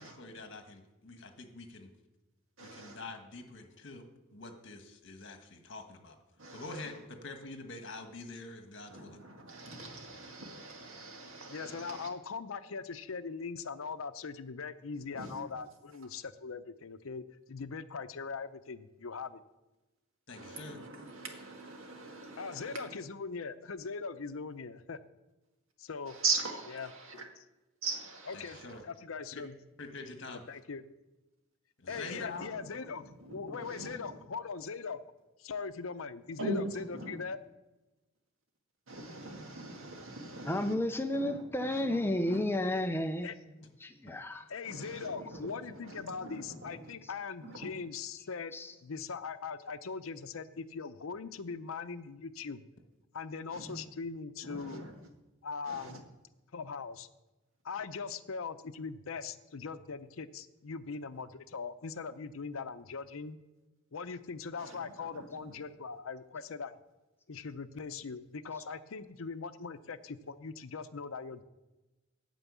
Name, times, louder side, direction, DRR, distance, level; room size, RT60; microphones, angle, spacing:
voice 1, 0.0-1.9 2.6-4.0 4.3-6.1 6.5-9.2 20.3-20.8 28.3-28.8 29.3-29.4 29.8-30.4 31.8-32.5 43.6-43.7, left 3 dB, 60° left, 6 dB, 1.5 m, -46 dB
voice 2, 2.6-3.0 6.4-6.9 8.9-12.1 15.1-15.4 20.3-22.9 26.1-27.2 27.8-28.7 31.9-32.7 33.2-34.0 36.4-37.2 38.9-40.5 41.2-41.4 41.8-42.0 42.3-42.4 44.7-46.9 47.4-47.7 53.5-53.8 54.4-54.9 55.7-56.0 64.6-65.2, right 3 dB, 75° right, 2 dB, 1.9 m, -41 dB
voice 3, 11.5-19.4 22.4-25.0 25.8-26.2 26.7-26.9 28.3-28.6 28.8-29.6 30.3-30.8 31.9-35.0 35.4-37.4 43.2-43.3 44.5-48.5 48.8-52.6 53.1-54.8 55.4-56.1 56.5-57.1 57.6-63.4 63.9-66.7 67.3-71.4, left 5 dB, 80° left, 11 dB, 0.6 m, -41 dB
voice 4, 40.1-44.5 45.2-45.4 47.0-47.1 48.2-48.8 68.5-68.6, left 1 dB, 10° left, 7 dB, 0.5 m, -33 dB
9.1 x 7.0 x 8.4 m, 1.1 s
head